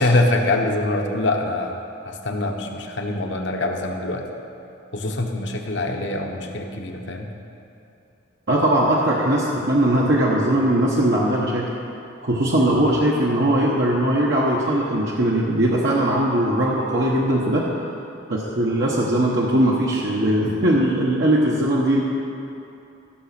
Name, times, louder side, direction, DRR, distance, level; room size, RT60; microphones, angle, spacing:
voice 1, 0.0-1.8 2.1-4.2 4.9-7.3, left 2 dB, 70° left, 2 dB, 1.1 m, -24 dB
voice 2, 8.5-11.6 12.2-17.6 18.3-22.0, right 1 dB, 65° right, -4 dB, 1.1 m, -20 dB
14.5 x 6.1 x 5.9 m, 2.8 s
head